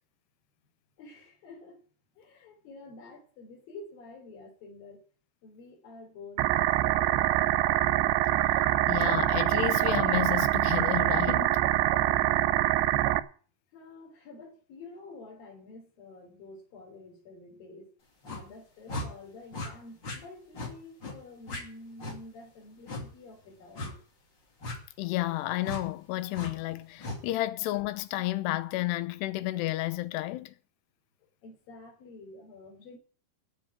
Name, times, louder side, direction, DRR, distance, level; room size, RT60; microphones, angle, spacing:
voice 1, 1.0-1.8 2.2-5.0 5.4-7.9 12.0-12.6 13.7-17.9 18.3-24.0 31.4-33.0, left 3 dB, 60° left, 4.9 m, -49 dB
sound 1, 6.4-13.2, right 15 dB, 90° right, 2.8 m, -25 dB
voice 2, 8.9-11.6 25.0-30.5, left 17 dB, 90° left, 2.9 m, -31 dB
sound 2, 18.2-18.4 18.9-19.1 19.5-19.7 20.0-20.2 20.5-20.7 21.0-21.2 21.5-21.6 22.0-22.2 22.9-23.0 23.7-23.9 24.6-24.8 25.6-25.8 26.3-26.5 27.0-27.2, left 2 dB, 35° left, 2.5 m, -36 dB
14.0 x 5.6 x 9.2 m
omnidirectional pair, 4.7 m